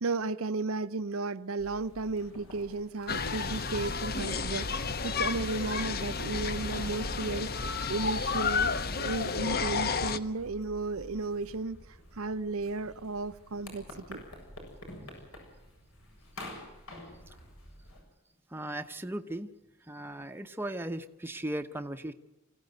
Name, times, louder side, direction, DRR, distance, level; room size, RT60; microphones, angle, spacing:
voice 1, 0.0-7.5 7.9-11.8 12.2-14.2, right 3 dB, 75° right, 0.7 m, -34 dB
sound 1, 1.6-18.0, left 1 dB, 75° left, 7.5 m, -51 dB
sound 2, 3.1-10.2, left 4 dB, 45° left, 1.0 m, -31 dB
voice 2, 18.5-19.5 19.9-22.1, right 1 dB, 10° right, 0.8 m, -37 dB
24.0 x 16.0 x 8.0 m
head